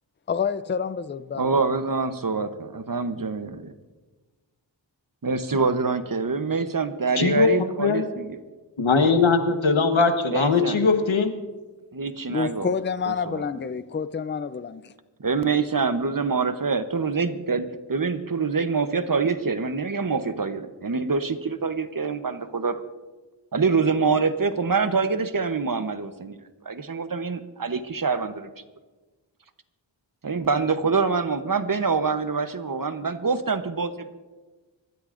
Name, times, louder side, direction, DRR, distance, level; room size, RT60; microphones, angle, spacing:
voice 1, 0.3-1.5 12.3-14.9, left 6 dB, 25° left, 0.5 m, -28 dB
voice 2, 1.4-3.7 5.2-8.4 10.3-10.8 11.9-12.7 13.3-13.4 15.2-22.8 23.5-26.4 26.6-28.5 30.2-34.1, right 4 dB, 45° right, 0.9 m, -25 dB
voice 3, 7.2-7.5 7.8-8.0 8.8-11.4, left 4 dB, 90° left, 1.3 m, -20 dB
25.0 x 13.5 x 2.6 m
wide cardioid pair, 50°, 46 cm